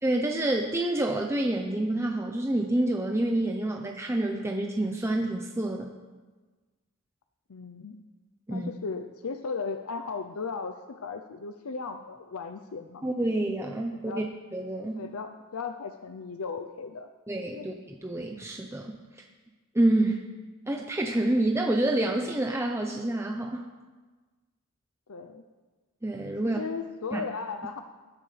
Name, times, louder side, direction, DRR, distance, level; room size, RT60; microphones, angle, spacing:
voice 1, 0.0-5.9 8.5-8.7 13.0-14.3 14.5-15.0 17.3-19.0 19.7-20.2 20.7-23.6 26.0-26.6 27.1-27.2, right 1 dB, 10° right, 2 dB, 0.7 m, -28 dB
voice 2, 7.5-8.0 8.5-13.0 14.0-14.3 15.0-17.1 17.6-17.7 25.1-25.4 26.6-27.8, left 5 dB, 80° left, 7 dB, 0.6 m, -36 dB
19.5 x 11.5 x 3.3 m, 1.3 s
head